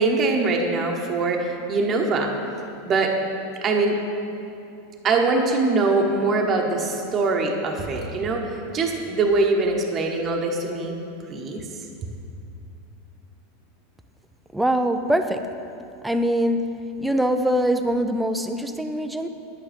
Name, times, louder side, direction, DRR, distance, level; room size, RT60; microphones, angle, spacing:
voice 1, 0.0-2.3 2.8-3.1 3.6-4.0 5.0-8.5 8.7-10.9 11.3-11.6, right 3 dB, 25° right, 2 dB, 1.1 m, -22 dB
voice 2, 14.5-15.4 16.0-16.6 17.0-19.3, right 1 dB, 5° right, 7 dB, 0.5 m, -23 dB
10.5 x 8.9 x 5.2 m, 2.6 s
supercardioid pair, 155°, 0 cm